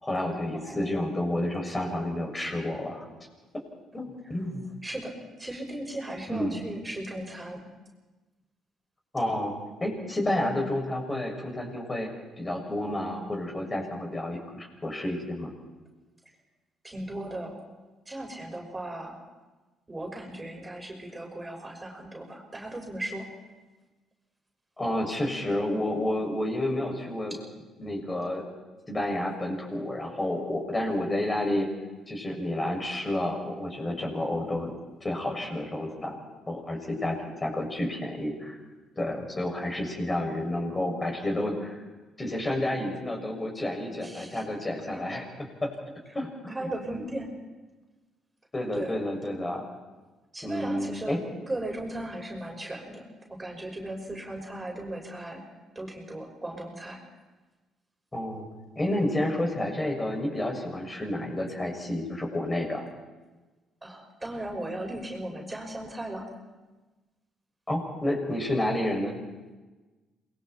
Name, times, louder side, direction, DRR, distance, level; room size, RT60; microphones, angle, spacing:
voice 1, 0.0-3.1 3.9-4.7 6.3-6.6 9.1-12.1 12.4-15.5 24.8-27.3 27.8-28.5 28.9-31.7 32.1-34.7 35.0-36.1 36.5-38.6 39.0-41.8 42.2-45.7 46.1-47.0 48.5-49.7 50.4-51.2 58.1-58.5 58.8-62.8 67.7-69.1, left 1 dB, 25° left, 1 dB, 6.8 m, -30 dB
voice 2, 0.5-0.9 4.8-7.7 16.8-17.5 18.1-19.2 19.9-23.3 44.0-44.4 44.9-45.1 46.5-47.3 48.7-48.9 50.3-51.2 51.5-53.0 53.3-55.4 55.7-57.0 63.8-66.3, right 1 dB, 20° right, 1 dB, 6.0 m, -37 dB
27.5 x 22.0 x 4.5 m, 1.2 s
hypercardioid pair, 50°, 0 cm